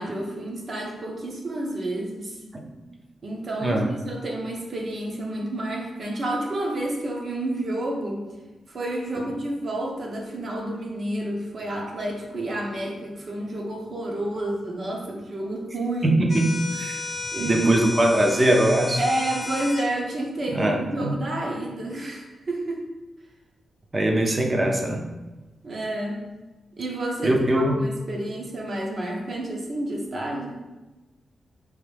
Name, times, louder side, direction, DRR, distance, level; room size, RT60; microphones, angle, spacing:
voice 1, 0.0-2.4 3.2-3.8 4.0-8.2 8.7-16.2 17.3-17.7 19.0-22.8 25.6-26.3 26.8-30.6, right 1 dB, 50° right, -1 dB, 0.9 m, -30 dB
voice 2, 3.6-3.9 16.0-17.0 17.4-19.0 20.5-21.2 23.9-25.1 27.2-27.8, right 1 dB, 25° right, 2 dB, 0.6 m, -22 dB
sound 1, 16.3-19.9, left 3 dB, 30° left, 0.5 m, -33 dB
4.7 x 2.7 x 3.4 m, 1.1 s
cardioid pair, 100°, 0 cm